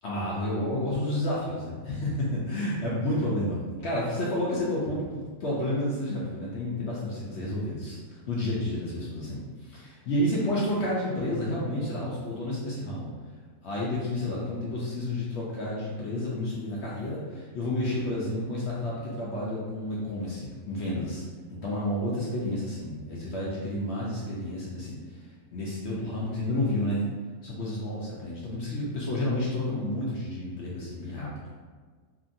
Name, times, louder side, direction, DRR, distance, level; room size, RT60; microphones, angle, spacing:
voice 1, 0.0-13.1 13.6-21.2 21.5-27.1 27.4-31.3, left 1 dB, 65° left, -6 dB, 0.7 m, -30 dB
2.9 x 2.5 x 2.5 m, 1.5 s
omnidirectional pair, 1.6 m